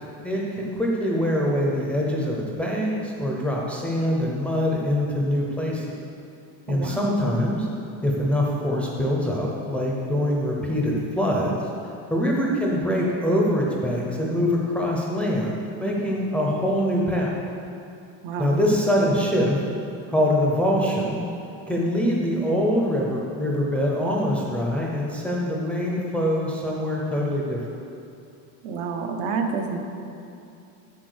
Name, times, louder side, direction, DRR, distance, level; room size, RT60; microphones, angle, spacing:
voice 1, 0.2-5.9 6.7-7.7 8.0-11.6 12.1-15.5 15.8-17.3 18.4-19.6 20.1-21.2 21.7-27.6, equal, 5° left, -3 dB, 0.7 m, -24 dB
voice 2, 6.7-7.1 12.5-12.6 18.2-18.6 28.6-29.8, right 5 dB, 65° right, 3 dB, 1.2 m, -28 dB
8.1 x 7.2 x 6.4 m, 2.7 s
cardioid pair, 170°, 44 cm